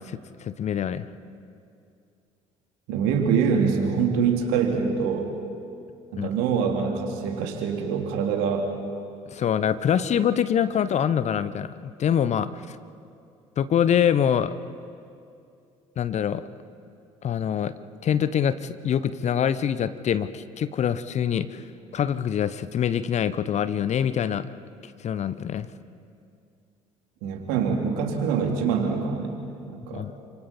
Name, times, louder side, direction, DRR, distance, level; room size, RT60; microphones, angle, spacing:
voice 1, 0.1-1.1 6.1-6.3 9.3-12.8 13.6-14.5 16.0-16.4 17.2-17.7 18.0-21.6 21.9-24.5 24.8-25.7 29.9-30.2, left 9 dB, 45° left, 14 dB, 0.9 m, -25 dB
voice 2, 2.9-5.3 6.1-8.7 27.2-29.4 29.6-30.1, right 6 dB, 70° right, 3 dB, 2.8 m, -25 dB
28.5 x 26.0 x 4.3 m, 2.5 s
figure-of-eight pair, 55°, 16 cm